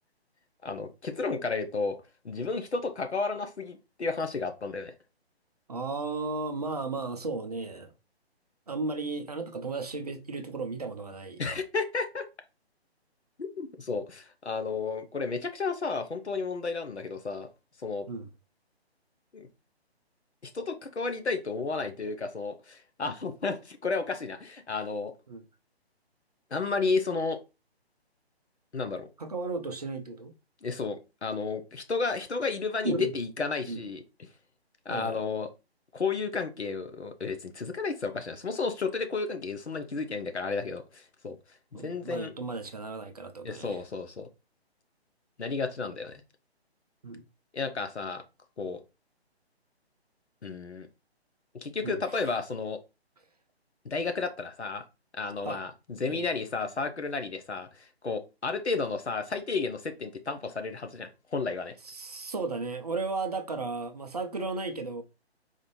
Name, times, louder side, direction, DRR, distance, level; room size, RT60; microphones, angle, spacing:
voice 1, 0.6-2.0 2.2-4.9 11.4-12.3 13.4-17.5 17.8-18.1 19.3-19.5 20.4-25.1 26.5-27.4 28.7-29.1 30.6-34.0 34.9-35.5 35.9-41.4 41.7-42.3 43.4-44.3 45.4-46.1 47.5-48.2 48.6-48.8 50.4-50.9 51.6-52.8 53.8-54.8 55.1-61.7, left 4 dB, 85° left, 0.7 m, -32 dB
voice 2, 5.7-7.9 8.7-11.4 18.1-18.3 25.3-25.4 29.2-30.3 32.8-33.1 33.7-33.8 34.9-35.2 41.7-43.8 47.0-47.2 51.8-52.0 55.4-55.6 56.1-56.3 61.8-65.0, right 3 dB, 40° right, 0.4 m, -34 dB
4.1 x 2.5 x 3.0 m
figure-of-eight pair, 140°, 33 cm